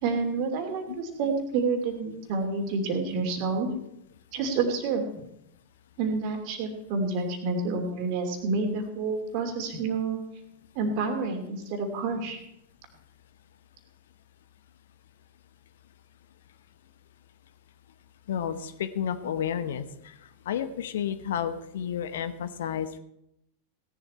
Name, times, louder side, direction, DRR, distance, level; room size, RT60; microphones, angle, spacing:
voice 1, 0.0-3.7 4.3-5.1 6.0-10.2 10.7-12.4, right 4 dB, 45° right, 5 dB, 2.7 m, -29 dB
voice 2, 18.3-20.1 20.5-23.0, left 9 dB, 60° left, 12 dB, 0.9 m, -31 dB
17.5 x 11.0 x 4.3 m, 0.79 s
figure-of-eight pair, 90°, 0 cm